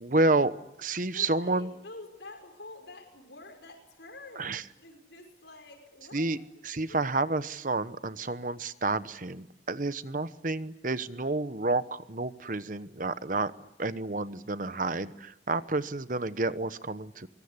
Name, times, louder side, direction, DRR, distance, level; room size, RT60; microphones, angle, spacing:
voice 1, 0.0-1.7 4.4-4.6 6.1-6.4 6.6-13.5 13.8-17.3, right 2 dB, 45° right, 13 dB, 1.1 m, -30 dB
voice 2, 1.1-6.3 6.9-7.0, left 2 dB, 75° left, 4 dB, 6.0 m, -48 dB
24.0 x 23.5 x 9.7 m, 0.82 s
head